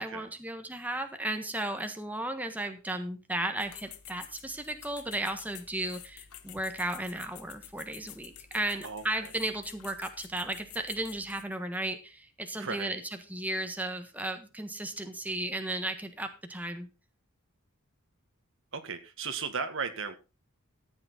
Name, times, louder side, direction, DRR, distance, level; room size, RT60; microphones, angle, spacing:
voice 1, 0.0-13.0 13.3-16.9, right 1 dB, 5° right, 6 dB, 1.4 m, -35 dB
sound 1, 3.6-11.4, left 11 dB, 80° left, 1.3 m, -50 dB
voice 2, 8.8-9.3 12.5-12.9 18.7-20.2, right 5 dB, 60° right, 8 dB, 1.8 m, -36 dB
14.0 x 9.1 x 4.1 m, 0.29 s
head